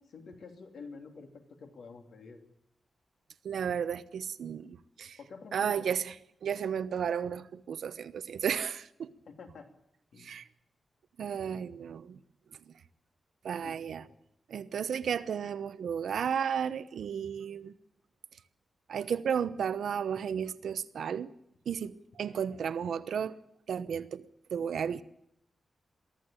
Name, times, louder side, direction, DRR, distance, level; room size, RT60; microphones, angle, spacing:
voice 1, 0.0-2.4 5.2-5.9 9.3-9.7 10.1-10.3 13.6-14.1, left 4 dB, 75° left, 3.1 m, -49 dB
voice 2, 3.4-5.2 5.5-6.1 6.4-9.1 10.2-10.5 11.2-12.2 13.4-14.0 14.5-17.7 18.9-21.3 21.7-23.3 23.7-24.3 24.5-25.0, right 7 dB, 85° right, 0.9 m, -33 dB
23.0 x 14.0 x 9.0 m
wide cardioid pair, 165°, 0 cm